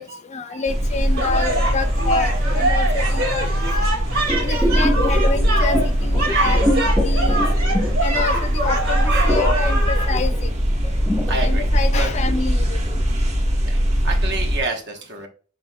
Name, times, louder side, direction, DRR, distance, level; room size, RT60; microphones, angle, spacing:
voice 1, 0.3-3.5 4.4-7.5 8.0-10.5 11.4-12.8, left 4 dB, 35° left, 10 dB, 0.4 m, -27 dB
sound 1, 0.7-14.6, equal, 35° right, 0.9 m, -21 dB
sound 2, 1.2-10.0, right 1 dB, 80° right, 2.2 m, -24 dB
sound 3, 4.3-8.7 8.9-12.5 12.9-13.0, left 1 dB, ahead, 0.8 m, -26 dB
voice 2, 6.3-6.7 9.1-9.4 11.3-12.2 13.6-15.3, right 3 dB, 55° right, 3 dB, 1.0 m, -29 dB
5.7 x 3.6 x 2.2 m, 0.39 s
head